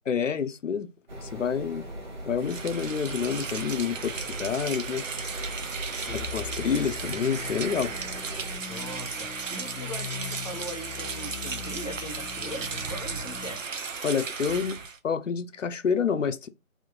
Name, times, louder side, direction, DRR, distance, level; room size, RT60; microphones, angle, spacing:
voice 1, 0.1-0.9 1.2-1.9 2.2-5.3 6.1-7.9 14.0-16.5, left 6 dB, 60° left, 0.6 m, -28 dB
sound 1, 1.1-8.6, right 1 dB, 35° right, 1.1 m, -39 dB
Rain, 2.4-15.0, right 5 dB, 65° right, 0.7 m, -35 dB
sound 2, 6.1-13.5, left 7 dB, 85° left, 0.9 m, -41 dB
voice 2, 8.7-13.6, equal, 30° left, 0.7 m, -40 dB
3.6 x 2.6 x 3.7 m
figure-of-eight pair, 160°, 42 cm